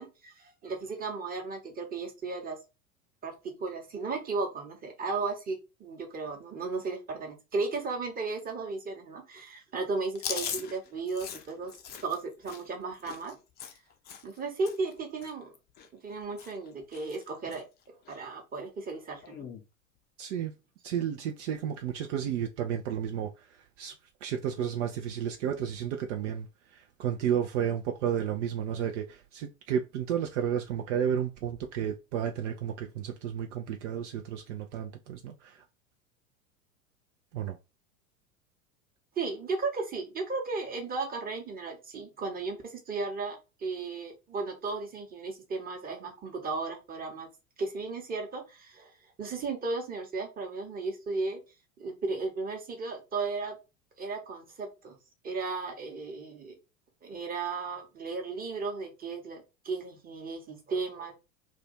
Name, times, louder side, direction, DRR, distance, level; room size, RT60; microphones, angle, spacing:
voice 1, 0.0-2.6 3.2-11.7 12.0-13.4 14.2-15.5 16.0-19.5 39.2-47.3 47.6-48.9 49.2-51.4 51.8-53.6 54.0-55.0 55.2-56.5 57.0-61.1, right 4 dB, 20° right, 1.0 m, -35 dB
Chewing mastication, 10.1-14.4 14.6-14.9 15.2-16.1 16.4-16.7 16.9-17.6 18.0-18.2 19.2-19.6, left 8 dB, 25° left, 0.5 m, -40 dB
voice 2, 20.2-20.5 20.8-23.9 24.2-35.6 37.3-37.6, right 9 dB, 60° right, 0.5 m, -32 dB
2.5 x 2.2 x 4.0 m
figure-of-eight pair, 85°, 42 cm